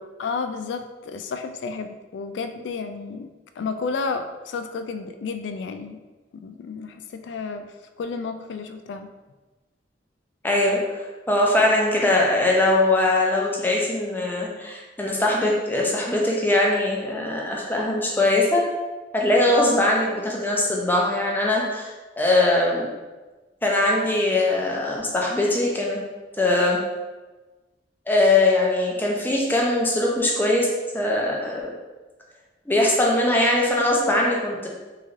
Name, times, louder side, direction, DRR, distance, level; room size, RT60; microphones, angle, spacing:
voice 1, 0.2-3.3 3.6-6.0 6.3-9.1, left 4 dB, 80° left, 8 dB, 0.3 m, -31 dB
voice 2, 10.4-18.6 19.1-22.9 23.6-26.0 26.4-26.8 28.1-30.7 30.9-31.7 32.7-34.7, left 2 dB, 10° left, -2 dB, 0.5 m, -21 dB
3.8 x 3.1 x 2.5 m, 1.2 s
head